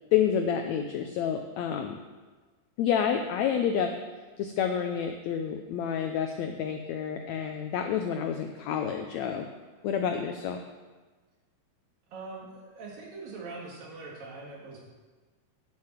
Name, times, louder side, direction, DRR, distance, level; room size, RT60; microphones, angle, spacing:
voice 1, 0.1-2.0 2.8-3.9 4.4-9.5 9.8-10.6, left 8 dB, 85° left, 5 dB, 1.5 m, -29 dB
voice 2, 12.1-14.8, right 3 dB, 85° right, -2 dB, 3.8 m, -42 dB
9.4 x 7.5 x 7.2 m, 1.3 s
omnidirectional pair, 3.9 m